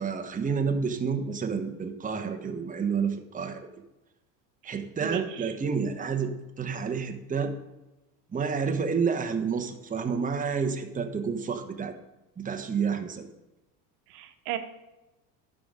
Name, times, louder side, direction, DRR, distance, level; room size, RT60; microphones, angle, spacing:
voice 1, 0.0-3.6 4.6-6.3 6.6-7.5 8.3-11.9 12.4-13.3, right 5 dB, 15° right, 6 dB, 0.9 m, -29 dB
voice 2, 4.6-5.5 14.1-14.6, right 11 dB, 75° right, 8 dB, 1.0 m, -36 dB
11.0 x 4.9 x 5.1 m, 1.0 s
supercardioid pair, 90°, 49 cm